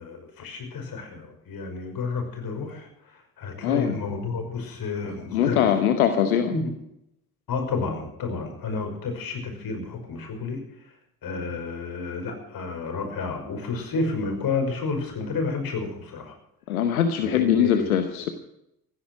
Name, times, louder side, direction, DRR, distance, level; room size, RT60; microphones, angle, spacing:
voice 1, 0.0-2.9 3.4-5.6 6.4-6.7 7.5-10.6 11.2-16.3 17.2-18.0, left 4 dB, 55° left, 4 dB, 5.8 m, -30 dB
voice 2, 3.6-4.0 5.3-6.5 16.7-18.3, left 9 dB, 90° left, 8 dB, 1.0 m, -22 dB
15.5 x 13.0 x 6.2 m, 0.80 s
hypercardioid pair, 50°, 42 cm